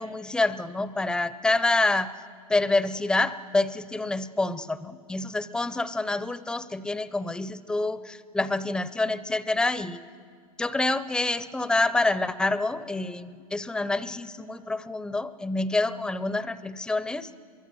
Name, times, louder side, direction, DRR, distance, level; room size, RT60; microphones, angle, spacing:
voice 1, 0.0-2.1 2.5-10.0 10.6-17.3, left 2 dB, 5° left, 15 dB, 0.6 m, -27 dB
24.5 x 22.5 x 7.6 m, 2.1 s
hypercardioid pair, 140°, 19 cm